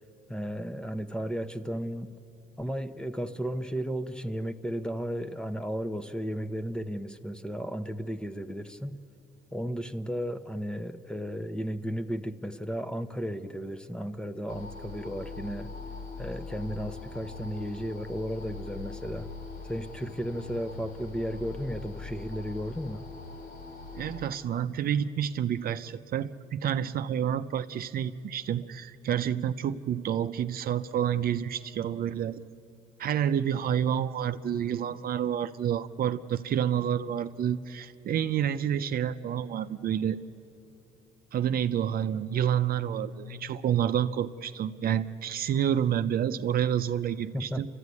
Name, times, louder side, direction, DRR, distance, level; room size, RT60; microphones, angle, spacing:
voice 1, 0.3-2.1 2.6-9.0 9.5-15.7 16.2-19.3 19.6-23.0 47.3-47.6, equal, 5° left, 0.9 m, -34 dB
sound 1, 14.5-24.3, left 4 dB, 70° left, 3.3 m, -42 dB
voice 2, 23.9-32.4 33.0-40.2 41.3-47.7, right 9 dB, 60° right, 0.6 m, -29 dB
30.0 x 13.0 x 9.6 m
cardioid pair, 100°, 17 cm